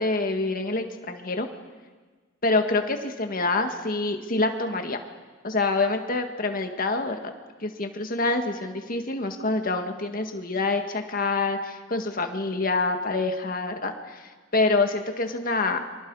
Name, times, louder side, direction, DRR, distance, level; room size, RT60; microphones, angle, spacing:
voice 1, 0.0-1.5 2.4-5.0 5.4-7.3 7.6-15.8, left 3 dB, 45° left, 5 dB, 1.8 m, -26 dB
30.0 x 24.5 x 4.8 m, 1.4 s
head